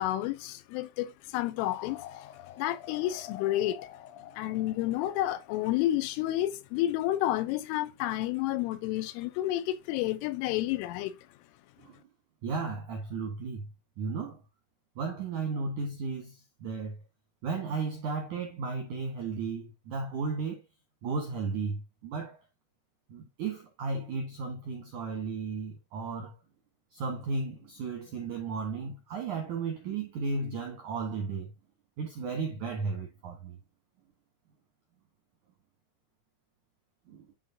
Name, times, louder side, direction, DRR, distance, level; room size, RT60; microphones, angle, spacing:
voice 1, 0.0-2.0 2.6-3.8 4.4-11.2, left 14 dB, 85° left, 3.3 m, -30 dB
sound 1, 1.6-6.0, left 11 dB, 70° left, 3.1 m, -47 dB
voice 2, 12.4-13.7 14.0-14.4 15.0-17.0 17.4-20.6 21.0-22.4 23.1-26.4 26.9-31.5 32.0-33.6 37.1-37.3, right 4 dB, 70° right, 1.9 m, -34 dB
11.5 x 4.0 x 2.7 m
omnidirectional pair, 5.6 m